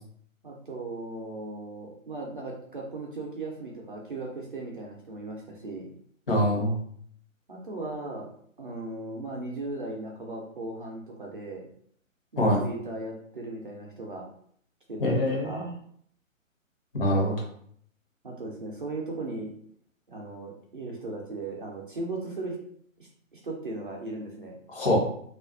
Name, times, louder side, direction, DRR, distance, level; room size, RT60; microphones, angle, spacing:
voice 1, 0.4-5.9 7.5-8.3 8.6-11.7 12.3-14.3 14.9-15.7 18.2-19.5 20.1-22.6 23.0-24.6, right 2 dB, 40° right, -2 dB, 0.4 m, -37 dB
voice 2, 6.3-6.8 12.4-12.6 15.0-15.7 17.0-17.3 24.7-25.0, equal, 45° left, -2 dB, 0.9 m, -24 dB
2.4 x 2.2 x 2.4 m, 0.63 s
figure-of-eight pair, 140°, 40 cm